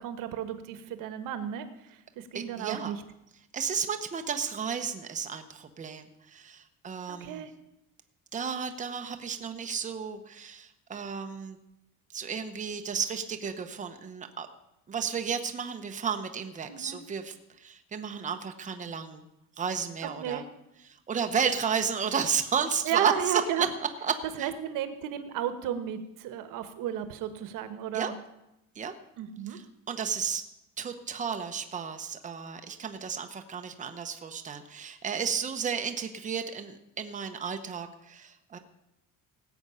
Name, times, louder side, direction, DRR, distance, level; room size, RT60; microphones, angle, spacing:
voice 1, 0.0-3.0 7.1-7.5 16.7-17.0 20.2-20.4 22.8-23.7 24.4-28.1 29.2-29.6, right 10 dB, 85° right, 10 dB, 1.2 m, -33 dB
voice 2, 2.3-3.0 3.5-7.4 8.3-11.6 12.1-14.5 14.9-19.3 19.6-20.4 20.9-23.7 24.0-24.5 27.9-28.1 28.8-28.9 29.5-30.4 30.8-38.6, right 6 dB, 25° right, 6 dB, 0.9 m, -33 dB
18.0 x 8.0 x 5.6 m, 0.88 s
cardioid pair, 150°, 32 cm